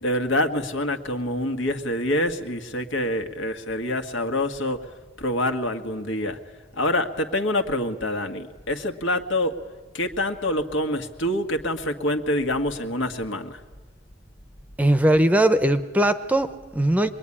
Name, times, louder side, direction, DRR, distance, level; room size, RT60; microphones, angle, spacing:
voice 1, 0.0-4.8 5.2-6.4 6.8-9.5 9.9-13.6, left 1 dB, 75° left, 6 dB, 1.8 m, -26 dB
voice 2, 14.8-17.1, right 1 dB, 10° right, 10 dB, 0.8 m, -20 dB
25.0 x 21.5 x 10.0 m, 1.3 s
head